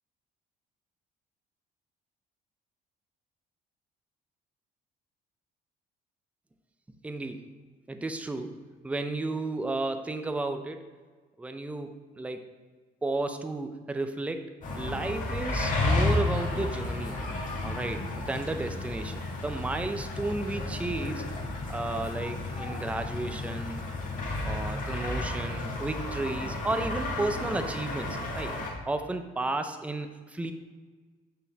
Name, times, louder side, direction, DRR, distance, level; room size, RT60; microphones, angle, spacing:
voice 1, 7.0-7.4 7.9-8.5 8.8-10.9 11.4-12.4 13.0-14.5 14.8-17.2 17.6-21.2 21.7-23.8 24.4-28.5 28.9-30.5, right 2 dB, 10° right, 7 dB, 0.5 m, -33 dB
sound 1, 14.6-28.7, left 2 dB, 50° left, 1.7 m, -32 dB
8.3 x 3.8 x 4.1 m, 1.4 s
cardioid pair, 110°, 17 cm